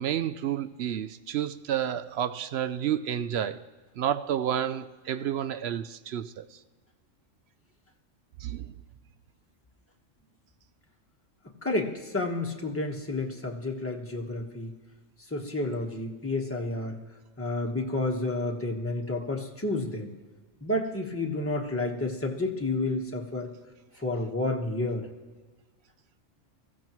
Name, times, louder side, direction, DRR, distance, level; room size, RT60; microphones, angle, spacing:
voice 1, 0.0-3.6 4.0-6.5 8.4-8.7, right 10 dB, 65° right, 0.7 m, -30 dB
voice 2, 11.6-14.7 15.3-17.0 17.4-20.1 20.6-23.5 24.0-25.1, left 2 dB, 10° left, 1.2 m, -30 dB
21.5 x 15.0 x 3.0 m
omnidirectional pair, 1.3 m